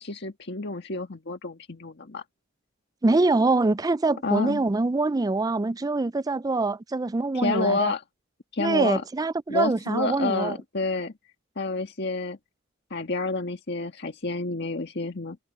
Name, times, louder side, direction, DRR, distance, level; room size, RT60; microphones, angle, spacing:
voice 1, 0.0-2.2 4.2-4.6 7.3-8.0 8.5-9.0 9.5-11.1 11.6-12.4 12.9-15.4, left 3 dB, 60° left, 1.7 m, -29 dB
voice 2, 3.0-7.9 8.6-10.6, right 3 dB, 20° right, 0.4 m, -24 dB
head